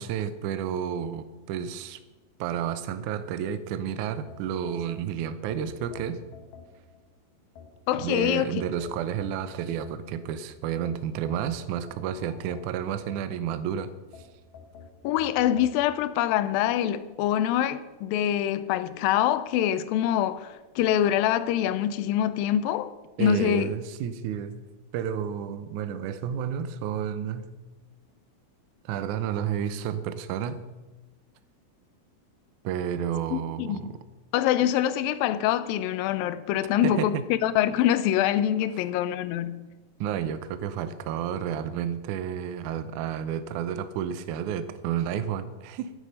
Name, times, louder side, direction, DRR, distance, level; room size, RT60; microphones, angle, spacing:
voice 1, 0.0-2.0 2.4-6.2 8.0-13.9 23.2-24.6 24.9-27.5 28.9-30.7 32.6-34.0 36.8-37.1 40.0-45.9, right 8 dB, 80° right, 1.8 m, -31 dB
sound 1, 4.3-7.1 7.6-10.3 10.8-13.6 14.1-15.8, left 5 dB, 65° left, 2.8 m, -49 dB
voice 2, 7.9-8.6 15.0-22.9 23.2-23.7 33.3-33.9 34.3-39.7, left 11 dB, 80° left, 2.3 m, -25 dB
13.0 x 9.9 x 5.3 m
omnidirectional pair, 4.2 m